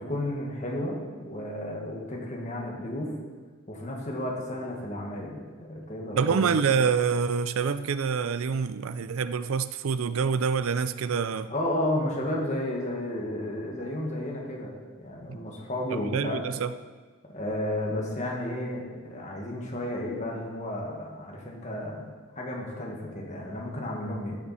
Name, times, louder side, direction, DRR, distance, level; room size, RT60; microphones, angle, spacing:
voice 1, 0.1-3.1 3.7-6.6 11.5-14.7 15.0-16.4 17.3-24.4, left 1 dB, 35° left, -1 dB, 1.8 m, -32 dB
voice 2, 6.2-11.5 15.3-15.4 15.9-16.7, right 6 dB, 80° right, 13 dB, 0.5 m, -26 dB
14.0 x 7.0 x 4.3 m, 1.4 s
head